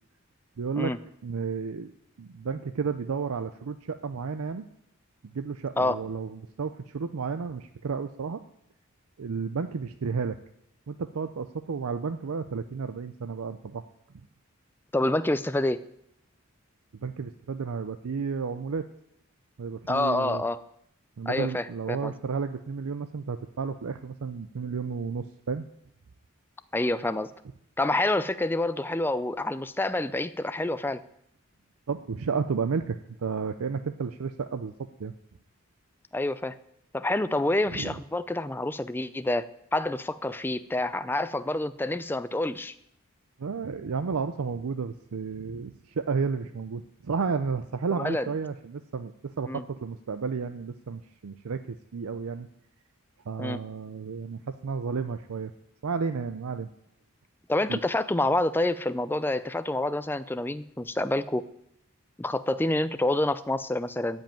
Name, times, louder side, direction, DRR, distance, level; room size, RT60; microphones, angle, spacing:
voice 1, 0.6-0.9 1.2-1.9 2.2-4.7 5.2-8.4 9.2-10.4 10.9-13.8 17.0-18.8 19.6-20.4 21.2-25.7 31.9-34.7 35.0-35.1 37.7-37.9 43.4-52.5 53.3-55.5 55.8-56.7 57.7-57.8, right 5 dB, 85° right, 9 dB, 0.5 m, -32 dB
voice 2, 14.9-15.8 19.9-20.6 21.3-22.1 26.7-27.3 27.8-31.0 36.1-36.6 36.9-42.7 47.9-48.3 49.5-49.6 53.4-53.6 57.5-61.4 62.2-64.2, left 2 dB, 10° left, 13 dB, 0.4 m, -27 dB
14.0 x 5.4 x 9.0 m, 0.77 s
head